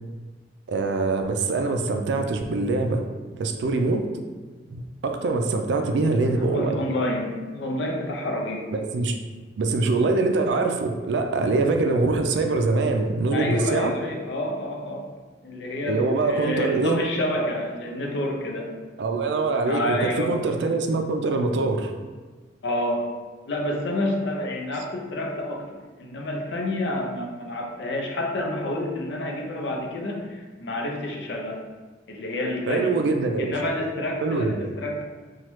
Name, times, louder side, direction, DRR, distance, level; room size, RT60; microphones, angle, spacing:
voice 1, 0.7-3.0 3.4-4.0 4.7-6.8 8.7-9.2 9.6-13.9 15.9-17.0 19.0-21.9 32.7-33.5 34.2-34.6, right 3 dB, 75° right, 4 dB, 0.4 m, -24 dB
voice 2, 6.4-8.7 13.3-15.1 15.4-18.7 19.6-20.3 22.6-23.1 23.5-31.6 32.1-32.9 33.4-35.0, left 1 dB, 75° left, 0 dB, 0.5 m, -28 dB
3.1 x 2.3 x 2.9 m, 1.4 s
head